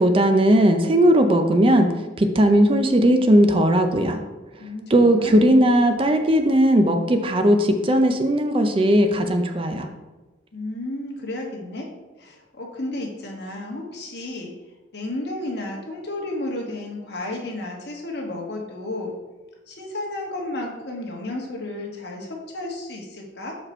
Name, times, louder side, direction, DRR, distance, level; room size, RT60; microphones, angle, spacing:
voice 1, 0.0-4.2 4.9-9.9, right 1 dB, 30° right, 6 dB, 0.5 m, -18 dB
voice 2, 4.6-5.6 10.5-11.9 12.2-14.5 14.9-19.1 19.7-23.6, left 2 dB, 55° left, 0 dB, 1.3 m, -32 dB
6.4 x 4.9 x 4.3 m, 1.2 s
head